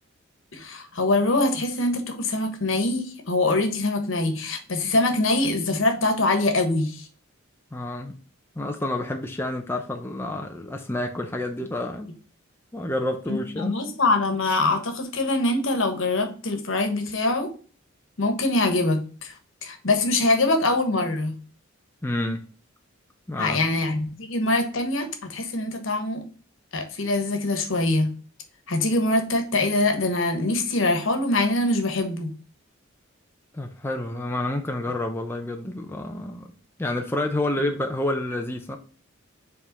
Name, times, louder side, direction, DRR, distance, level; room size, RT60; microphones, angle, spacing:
voice 1, 0.5-7.1 13.3-17.5 18.2-19.3 19.6-21.4 23.4-26.2 26.7-28.1 28.7-32.3, left 2 dB, 65° left, 1.2 m, -24 dB
voice 2, 7.7-8.2 8.6-12.1 12.7-13.8 22.0-22.5 23.3-23.7 33.5-36.5 36.8-38.8, left 1 dB, 10° left, 0.5 m, -29 dB
5.1 x 3.6 x 5.2 m
head